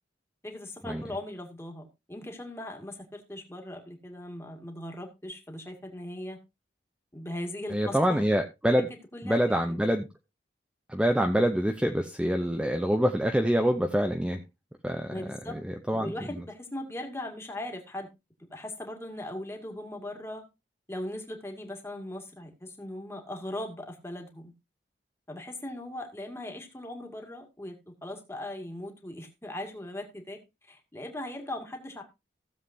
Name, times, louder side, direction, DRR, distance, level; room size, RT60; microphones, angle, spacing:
voice 1, 0.4-6.4 7.1-8.2 8.8-8.9 9.1-9.8 15.1-15.6 15.9-18.1 18.5-20.4 20.9-24.5 25.3-32.0, left 1 dB, 15° left, 3 dB, 2.2 m, -39 dB
voice 2, 7.7-8.9 9.2-10.1 10.9-14.4 14.8-15.4 15.7-16.1, equal, 5° right, 4 dB, 0.7 m, -26 dB
16.5 x 7.4 x 2.7 m, 0.23 s
head